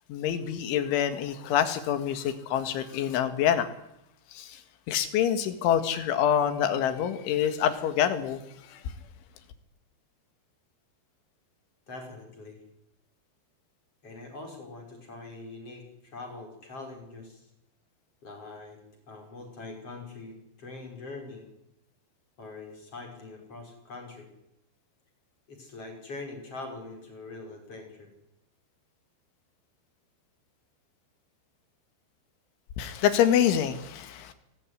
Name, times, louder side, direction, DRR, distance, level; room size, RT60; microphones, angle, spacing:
voice 1, 0.1-3.7 4.3-4.6 4.9-8.4 8.7-8.8 32.8-34.3, left 9 dB, 90° left, 10 dB, 4.3 m, -26 dB
voice 2, 11.9-12.6 14.0-17.5 18.2-18.8 19.1-21.5 22.4-24.3 25.5-28.1, left 3 dB, 30° left, 3 dB, 6.4 m, -43 dB
29.0 x 20.0 x 10.0 m, 0.84 s
omnidirectional pair, 5.3 m